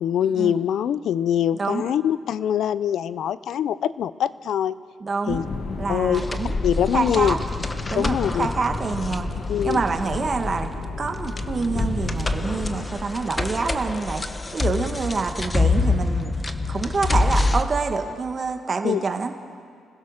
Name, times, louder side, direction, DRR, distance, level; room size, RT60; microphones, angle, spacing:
voice 1, 0.0-4.8 5.3-5.4 5.9-6.2 6.6-7.3 8.0-8.5 9.5-9.8 18.8-19.0, left 9 dB, 70° left, 17 dB, 0.6 m, -23 dB
voice 2, 1.5-1.9 5.0-5.4 5.8-6.5 6.9-7.4 7.9-9.3 9.6-10.7 11.0-14.2 14.5-16.3 16.7-19.3, right 4 dB, 35° right, 5 dB, 1.7 m, -26 dB
sound 1, 5.3-12.9, left 3 dB, 55° left, 1.9 m, -31 dB
sound 2, 6.1-17.6, left 3 dB, 20° left, 1.1 m, -26 dB
26.0 x 16.0 x 6.6 m, 2.2 s
cardioid pair, 90°, 0 cm